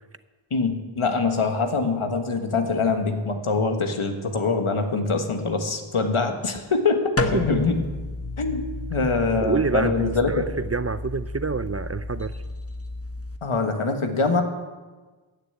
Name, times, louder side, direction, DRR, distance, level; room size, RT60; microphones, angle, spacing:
voice 1, 0.5-7.8 8.4-8.6 8.9-10.4 13.4-14.4, left 4 dB, 80° left, 5 dB, 1.6 m, -24 dB
sound 1, 7.2-13.4, left 2 dB, 30° left, 1.2 m, -32 dB
voice 2, 9.4-12.3, right 4 dB, 30° right, 14 dB, 0.5 m, -27 dB
14.5 x 6.8 x 9.4 m, 1.3 s
wide cardioid pair, 40°, 50 cm